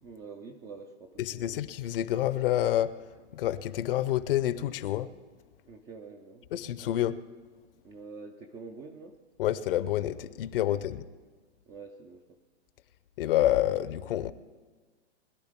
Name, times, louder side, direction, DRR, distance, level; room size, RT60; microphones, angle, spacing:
voice 1, 0.0-1.5 5.7-6.5 7.8-9.2 10.5-10.8 11.7-12.4, right 4 dB, 10° right, 4 dB, 0.3 m, -46 dB
voice 2, 1.2-2.9 3.3-5.1 6.5-7.2 9.4-11.0 13.2-14.3, left 12 dB, 55° left, 16 dB, 0.6 m, -28 dB
20.5 x 11.5 x 3.6 m, 1.4 s
hypercardioid pair, 115°, 34 cm